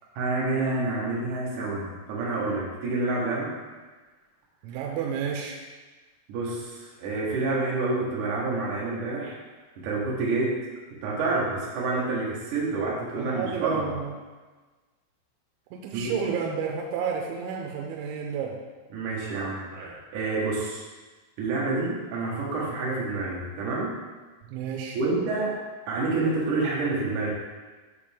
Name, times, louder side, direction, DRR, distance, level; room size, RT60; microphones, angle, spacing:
voice 1, 0.2-3.5 6.3-9.4 9.8-10.6 11.0-13.9 15.9-16.1 18.9-20.8 21.4-23.9 24.9-25.5 25.9-27.3, right 3 dB, 65° right, -5 dB, 2.1 m, -28 dB
voice 2, 4.6-5.6 13.2-14.1 15.7-18.6 24.5-25.0, right 7 dB, 90° right, 1 dB, 2.9 m, -31 dB
7.2 x 5.0 x 3.5 m, 1.3 s
omnidirectional pair, 5.2 m